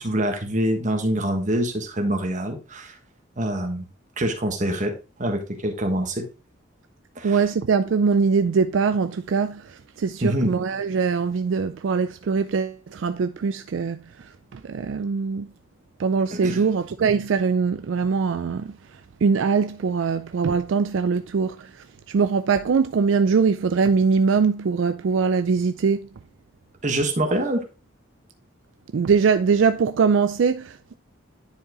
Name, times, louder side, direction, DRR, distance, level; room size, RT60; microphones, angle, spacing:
voice 1, 0.0-3.0 3.4-3.8 4.2-6.2 7.1-7.4 10.2-10.5 16.3-16.6 26.8-27.6, right 1 dB, 40° right, 1.4 m, -25 dB
voice 2, 7.2-15.5 16.0-26.1 28.9-30.9, right 5 dB, 75° right, 0.4 m, -22 dB
10.5 x 4.6 x 3.0 m
head